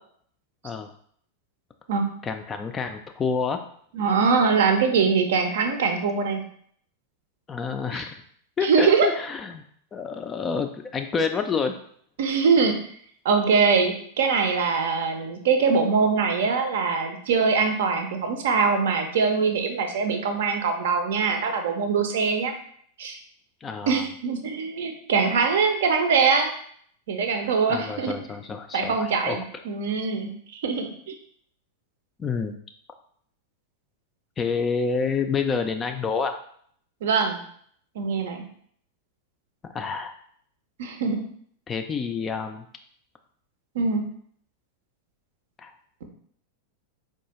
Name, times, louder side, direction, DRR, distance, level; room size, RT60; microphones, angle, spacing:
voice 1, 2.2-3.6 7.5-8.2 8.6-9.6 9.9-11.8 23.6-24.0 27.7-29.4 32.2-32.5 34.4-36.3 39.7-40.1 41.7-42.7 45.6-45.7, left 5 dB, 20° left, 6 dB, 0.3 m, -28 dB
voice 2, 3.9-6.4 7.9-8.0 8.6-9.1 12.2-12.7 13.2-22.5 23.0-23.2 23.9-26.5 27.1-28.2 28.7-31.2 37.0-37.4 38.0-38.4 40.8-41.2 43.7-44.0 46.0-46.1, right 5 dB, 60° right, 6 dB, 0.5 m, -23 dB
4.6 x 2.3 x 2.9 m, 0.62 s
figure-of-eight pair, 90°, 0 cm